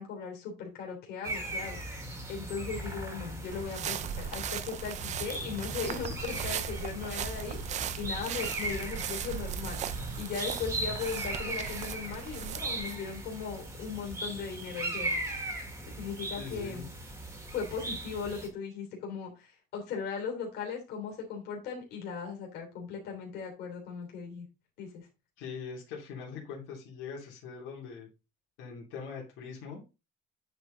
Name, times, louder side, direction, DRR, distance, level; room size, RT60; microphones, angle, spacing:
voice 1, 0.0-2.0 2.3-7.6 8.0-15.2 15.9-16.9 17.5-24.5 24.8-25.1, left 6 dB, 60° left, 1 dB, 3.2 m, -38 dB
sound 1, 1.2-18.5, right 1 dB, 15° right, 1.6 m, -38 dB
sound 2, 3.5-13.0, right 9 dB, 40° right, 0.6 m, -38 dB
voice 2, 16.4-16.9 25.4-28.1 28.6-29.8, left 5 dB, 85° left, -2 dB, 3.0 m, -42 dB
9.3 x 4.7 x 3.8 m, 0.28 s
cardioid pair, 175°, 19 cm